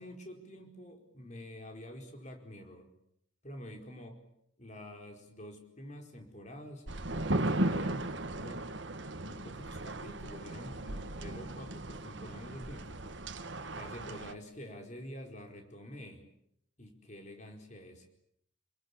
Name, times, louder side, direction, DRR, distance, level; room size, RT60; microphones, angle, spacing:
voice 1, 0.0-2.9 3.4-4.1 4.6-6.9 7.4-8.7 9.2-13.2 13.7-16.2 16.8-18.1, equal, 35° left, 4 dB, 4.7 m, -47 dB
sound 1, 6.9-14.3, right 1 dB, 65° right, 1.6 m, -36 dB
30.0 x 21.5 x 8.6 m, 0.72 s
head